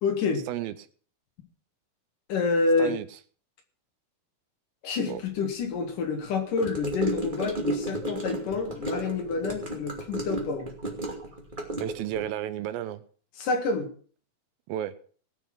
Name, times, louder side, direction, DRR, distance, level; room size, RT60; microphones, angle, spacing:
voice 1, 0.0-0.5 2.3-3.0 4.8-10.7 13.4-13.9, left 4 dB, 60° left, 4 dB, 3.4 m, -28 dB
Gurgling / Car passing by / Sink (filling or washing), 6.6-12.2, right 1 dB, 15° right, 2.0 m, -33 dB
voice 2, 11.8-13.0 14.7-14.9, right 12 dB, 80° right, 13 dB, 2.5 m, -32 dB
18.0 x 6.9 x 6.0 m, 0.43 s
omnidirectional pair, 4.3 m